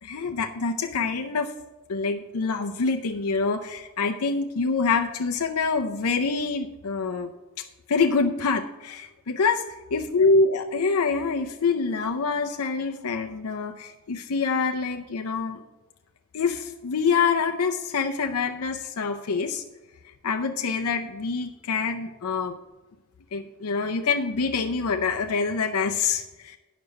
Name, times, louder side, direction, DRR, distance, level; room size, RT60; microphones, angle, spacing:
voice 1, 0.0-1.5 1.9-7.3 7.6-9.6 9.9-15.6 16.3-19.6 20.2-22.6 23.3-26.6, left 4 dB, 85° left, 4 dB, 0.6 m, -26 dB
9.6 x 6.0 x 6.3 m, 1.1 s
head